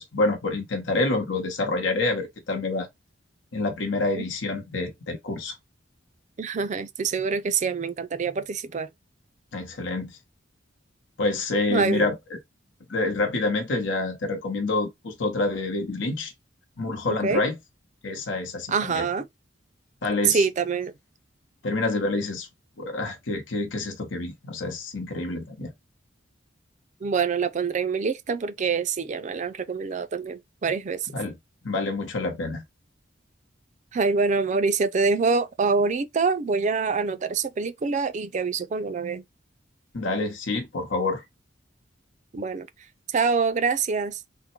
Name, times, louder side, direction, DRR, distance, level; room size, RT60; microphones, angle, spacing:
voice 1, 0.0-2.9 3.5-5.5 9.5-10.2 11.2-12.4 12.9-16.3 16.8-17.6 18.0-19.1 20.0-20.4 21.6-22.5 22.8-25.7 31.1-31.4 31.6-32.6 39.9-41.2, left 2 dB, 85° left, 1.0 m, -27 dB
voice 2, 6.4-8.9 11.7-12.1 17.1-17.4 18.7-19.2 20.2-20.9 27.0-31.1 33.9-39.2 42.3-42.7 43.1-44.2, right 5 dB, 40° right, 0.4 m, -25 dB
3.6 x 2.1 x 4.3 m
head